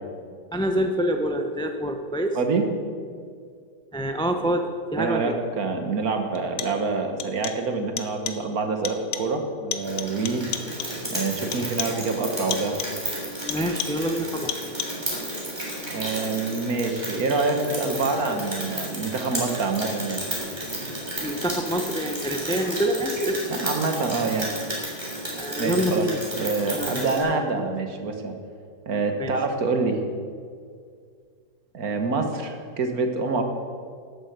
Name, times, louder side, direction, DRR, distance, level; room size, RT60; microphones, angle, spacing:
voice 1, 0.5-2.4 3.9-5.3 13.5-14.5 21.2-23.4 25.4-26.2 26.7-27.1 27.6-27.7 29.2-29.3, equal, 5° left, 5 dB, 0.4 m, -26 dB
voice 2, 2.4-2.7 5.0-10.4 11.1-12.8 15.9-20.2 20.8-20.9 23.5-24.5 25.6-28.4 28.9-30.0 31.7-33.4, right 4 dB, 60° right, 5 dB, 1.8 m, -26 dB
sound 1, 5.3-5.4 6.3-6.9 7.2-7.7 8.0-8.5 8.8-9.4 9.7-11.1 11.5-12.1 12.5-13.1 13.5-14.1 14.5-15.1, left 9 dB, 75° left, 1.3 m, -34 dB
Rain, 9.8-27.2, right 1 dB, 15° right, 3.4 m, -32 dB
13.0 x 8.1 x 8.1 m, 2.1 s
omnidirectional pair, 1.8 m